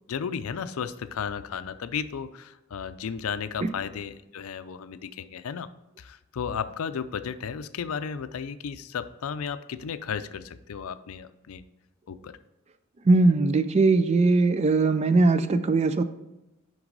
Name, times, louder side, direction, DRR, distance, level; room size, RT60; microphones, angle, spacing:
voice 1, 0.1-5.7 6.0-11.6 12.1-12.4, left 7 dB, 75° left, 12 dB, 0.4 m, -34 dB
voice 2, 13.1-16.0, right 3 dB, 30° right, 11 dB, 0.4 m, -20 dB
6.0 x 5.3 x 3.9 m, 0.94 s
head